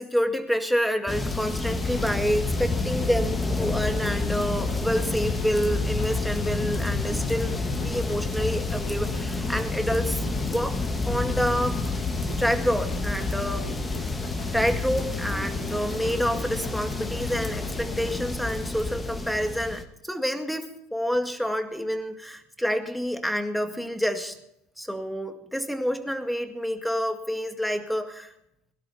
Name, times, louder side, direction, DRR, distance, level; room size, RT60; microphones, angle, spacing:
voice 1, 0.0-10.3 10.5-10.8 11.1-11.8 12.4-13.7 14.5-24.4 24.8-28.3, equal, ahead, 6 dB, 2.1 m, -28 dB
sound 1, 1.1-19.8, left 3 dB, 15° left, 1.8 m, -29 dB
sound 2, 1.7-18.3, left 4 dB, 75° left, 4.5 m, -40 dB
22.0 x 12.0 x 4.3 m, 0.77 s
supercardioid pair, 100°, 0 cm